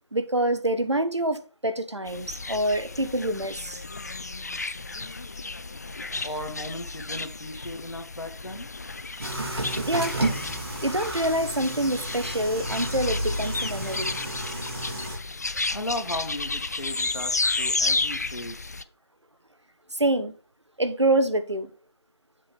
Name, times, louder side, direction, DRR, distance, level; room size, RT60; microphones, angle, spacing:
voice 1, 0.1-3.8 9.9-10.2 10.8-14.2 19.9-20.3 20.8-21.7, right 1 dB, 85° right, 1.2 m, -26 dB
sound 1, 2.1-18.8, left 3 dB, 35° left, 0.4 m, -32 dB
voice 2, 6.2-8.7 10.5-10.6 15.7-18.7, left 1 dB, 90° left, 1.9 m, -36 dB
sound 2, 9.2-15.2, right 1 dB, 60° right, 2.9 m, -31 dB
7.4 x 5.1 x 4.7 m
figure-of-eight pair, 160°, 14 cm